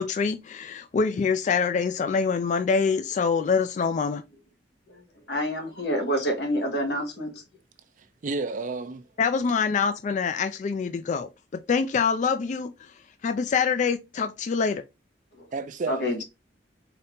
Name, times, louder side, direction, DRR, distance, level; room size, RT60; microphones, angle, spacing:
voice 1, 0.0-4.2 9.2-12.9 13.2-14.8, left 5 dB, 40° left, 0.3 m, -25 dB
voice 2, 4.9-7.4 15.4-15.5 15.9-16.2, equal, 65° left, 1.4 m, -28 dB
voice 3, 8.2-9.0 15.5-16.2, right 3 dB, 45° right, 0.5 m, -31 dB
4.1 x 2.7 x 3.4 m
head